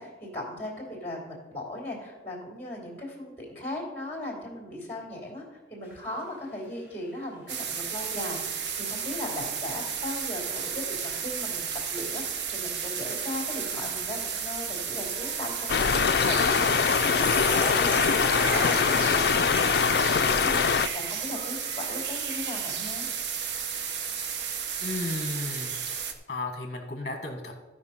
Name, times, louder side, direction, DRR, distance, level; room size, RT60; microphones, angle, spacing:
voice 1, 0.0-18.2 18.5-23.1, left 1 dB, 10° left, -3 dB, 2.8 m, -38 dB
sound 1, 5.8-6.3 6.8-7.0 7.9-8.2 8.8-20.8, left 1 dB, 10° right, 2.2 m, -40 dB
sound 2, 7.5-26.1, right 7 dB, 80° right, 1.0 m, -33 dB
sound 3, 15.7-20.9, left 6 dB, 60° left, 0.4 m, -23 dB
voice 2, 24.8-25.7 26.3-27.5, left 2 dB, 40° left, 4 dB, 1.3 m, -33 dB
15.0 x 5.2 x 5.6 m, 1.2 s
head